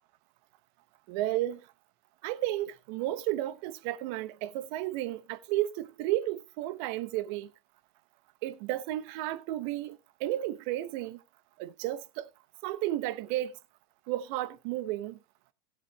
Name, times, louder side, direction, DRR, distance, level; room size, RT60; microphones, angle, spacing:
voice 1, 1.1-1.6 2.2-7.5 8.4-11.2 11.6-12.3 12.6-13.5 14.1-15.2, right 15 dB, 45° right, 1.1 m, -33 dB
16.0 x 7.4 x 3.1 m
supercardioid pair, 140°, 31 cm